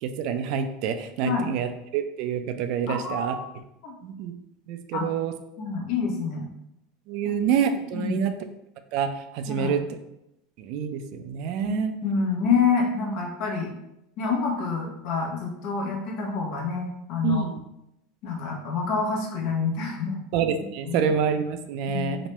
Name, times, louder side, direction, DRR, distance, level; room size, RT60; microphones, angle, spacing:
voice 1, 0.0-3.3 4.0-4.3 4.7-5.3 7.1-8.3 8.9-9.8 10.6-11.9 17.2-17.6 20.3-22.3, right 7 dB, 60° right, 8 dB, 0.3 m, -27 dB
voice 2, 2.9-3.4 3.8-4.0 4.9-5.1 5.6-6.5 7.9-8.1 9.5-9.7 11.6-13.7 14.2-17.5 18.2-20.2 20.9-21.1 21.9-22.2, left 5 dB, 60° left, 0 dB, 0.8 m, -27 dB
3.0 x 2.2 x 2.9 m, 0.85 s
supercardioid pair, 105°, 0 cm